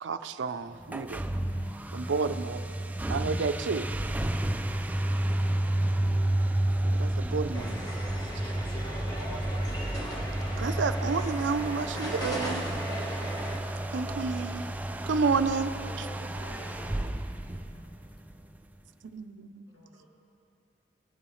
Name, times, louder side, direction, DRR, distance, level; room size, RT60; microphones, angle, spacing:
voice 1, 0.0-1.2 1.9-2.6 3.1-3.9 6.8-8.0 10.6-12.7 13.9-14.6 15.0-15.7 19.0-19.6, right 4 dB, 80° right, 10 dB, 0.5 m, -30 dB
sound 1, 0.8-18.3, right 1 dB, 10° right, 0.3 m, -31 dB
sound 2, 7.5-13.6, equal, 20° left, 1.2 m, -38 dB
voice 2, 12.7-13.3 16.3-17.3 17.7-17.8, left 3 dB, 55° left, 7 dB, 0.7 m, -51 dB
voice 3, 15.7-16.9 19.7-20.1, left 1 dB, 80° left, -3 dB, 2.1 m, -48 dB
19.5 x 9.2 x 3.1 m, 2.7 s
head